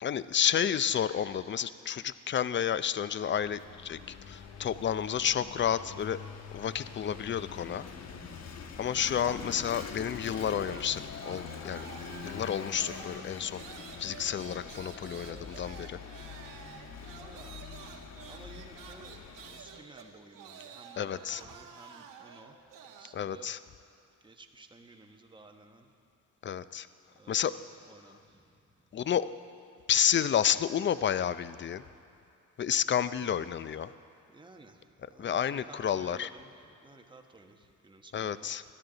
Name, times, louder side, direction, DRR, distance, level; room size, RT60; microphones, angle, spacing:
voice 1, 0.0-4.0 4.3-6.2 6.5-7.9 8.8-11.0 11.3-11.9 12.2-13.6 14.0-16.0 21.0-21.4 23.1-23.6 26.4-26.9 27.3-27.5 28.9-29.3 29.9-31.8 32.6-33.9 35.2-36.3 38.1-38.6, left 9 dB, 35° left, 15 dB, 0.5 m, -30 dB
Vehicle / Engine, 3.2-19.8, left 6 dB, 55° left, 1.2 m, -45 dB
sound 1, 8.8-11.0 11.2-23.2, right 7 dB, 75° right, 1.3 m, -50 dB
voice 2, 15.3-15.6 17.2-17.6 18.2-19.1 19.5-22.6 23.0-23.5 24.2-25.9 27.2-27.5 27.9-28.2 34.3-34.8 35.0-36.5 36.8-38.5, right 3 dB, 15° right, 4 dB, 1.3 m, -54 dB
21.0 x 13.0 x 3.9 m, 2.5 s
cardioid pair, 80°, 32 cm